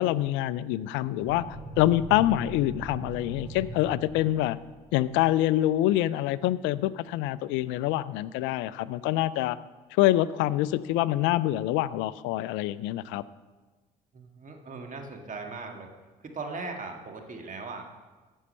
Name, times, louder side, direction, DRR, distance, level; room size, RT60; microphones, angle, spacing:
voice 1, 0.0-1.4 1.8-4.6 4.9-9.6 10.0-13.2, left 14 dB, 65° left, 18 dB, 0.5 m, -26 dB
sound 1, 1.2-5.3, right 3 dB, 15° right, 3.8 m, -41 dB
voice 2, 14.1-15.9 16.2-18.0, right 3 dB, 40° right, 3 dB, 1.9 m, -39 dB
14.0 x 5.5 x 5.5 m, 1.3 s
hypercardioid pair, 55°, 21 cm